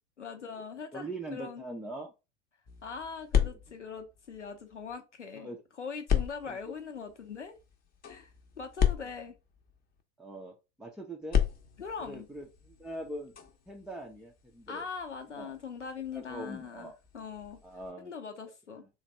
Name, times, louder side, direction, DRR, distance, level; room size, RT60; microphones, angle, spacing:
voice 1, 0.2-1.0 1.3-1.6 2.8-5.5 5.8-7.5 8.0-8.3 8.6-9.4 11.8-12.3 14.7-17.6 18.0-18.8, left 5 dB, 85° left, 0.8 m, -41 dB
voice 2, 0.9-2.1 3.4-3.5 5.3-5.6 6.5-6.8 9.0-9.1 10.2-11.4 12.0-13.4 13.7-14.9 15.4-15.5 16.1-16.9 17.6-18.1 18.8-18.9, right 1 dB, ahead, 0.4 m, -42 dB
sound 1, 2.7-5.0 6.1-10.0 11.2-17.9, left 8 dB, 25° left, 0.7 m, -35 dB
3.2 x 2.3 x 4.1 m
figure-of-eight pair, 85°, 35 cm